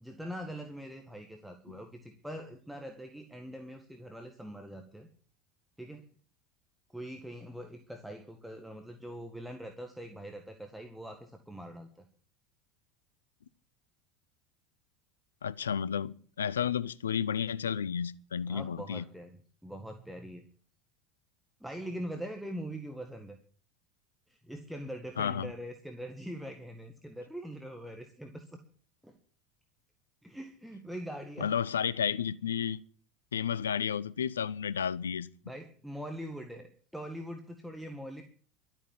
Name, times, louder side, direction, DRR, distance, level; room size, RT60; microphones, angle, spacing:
voice 1, 0.0-5.1 5.8-6.0 6.9-11.9 18.5-19.3 19.6-20.4 21.6-23.4 24.3-28.5 29.0-29.1 30.2-31.5 35.5-38.2, equal, ahead, 1.8 m, -42 dB
voice 2, 15.4-19.0 25.2-25.5 31.4-32.8 33.3-35.3, left 8 dB, 75° left, 0.6 m, -32 dB
12.5 x 8.9 x 9.0 m
figure-of-eight pair, 75°, 0 cm